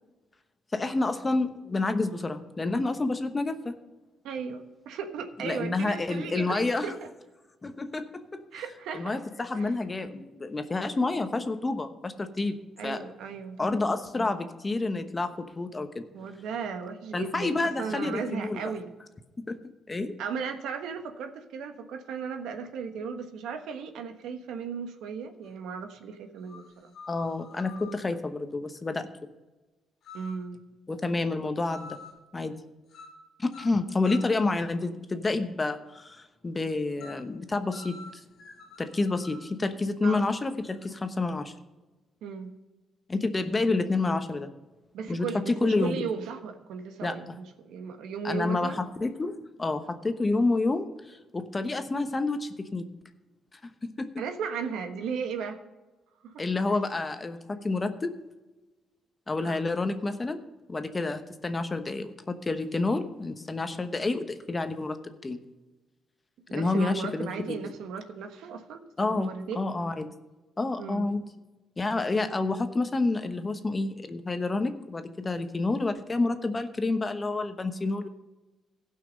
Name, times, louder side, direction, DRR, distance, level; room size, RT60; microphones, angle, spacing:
voice 1, 0.7-3.8 5.4-6.9 7.6-8.6 8.9-13.1 13.6-16.0 17.1-18.7 19.5-19.6 19.9-20.1 27.1-29.1 30.9-32.0 32.3-32.5 33.4-38.2 38.8-41.5 43.1-44.5 45.1-46.1 47.0-47.2 48.2-52.9 53.6-53.7 54.0-54.1 56.4-58.1 59.3-60.4 60.7-65.0 65.2-65.4 66.5-67.3 67.6-67.7 69.0-70.1 70.6-71.2 71.8-78.1, left 3 dB, 25° left, 9 dB, 1.0 m, -29 dB
voice 2, 4.2-6.9 8.5-9.2 9.5-9.7 12.8-13.6 16.1-18.9 20.2-26.9 30.1-30.6 40.0-40.3 42.2-42.5 44.9-48.8 54.2-55.6 56.2-56.4 56.7-56.8 59.4-59.7 66.5-69.7 70.8-71.1, right 6 dB, 85° right, 6 dB, 1.3 m, -36 dB
sound 1, 25.5-25.6 26.5-28.0 30.0-30.5 31.7-32.2 32.9-33.2 33.5-34.4 37.0-37.3 37.7-39.5, left 4 dB, 70° left, 2.1 m, -47 dB
16.0 x 5.8 x 5.3 m, 1.1 s
cardioid pair, 90°, 0 cm